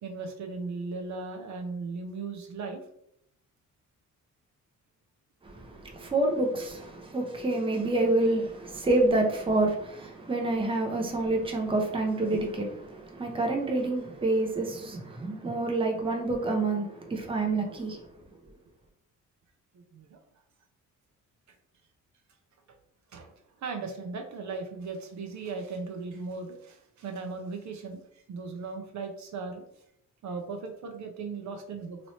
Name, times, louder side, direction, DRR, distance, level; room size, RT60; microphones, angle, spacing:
voice 1, 0.0-2.8 19.7-20.2 23.1-29.6 30.2-32.0, right 4 dB, 55° right, 0.6 m, -37 dB
voice 2, 5.4-18.1, right 2 dB, 15° right, 0.6 m, -28 dB
3.0 x 3.0 x 2.8 m
cardioid pair, 105°, 33 cm